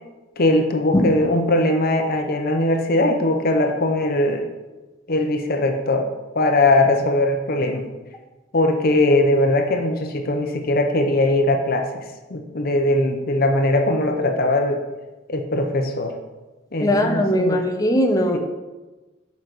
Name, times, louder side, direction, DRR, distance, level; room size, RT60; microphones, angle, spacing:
voice 1, 0.4-4.5 5.1-6.1 6.3-7.9 8.5-12.0 12.3-14.8 15.3-16.1 16.7-17.6 18.3-18.4, left 1 dB, 50° left, 5 dB, 0.8 m, -20 dB
voice 2, 16.8-18.4, left 1 dB, 20° left, 3 dB, 0.9 m, -19 dB
7.8 x 5.3 x 6.1 m, 1.2 s
head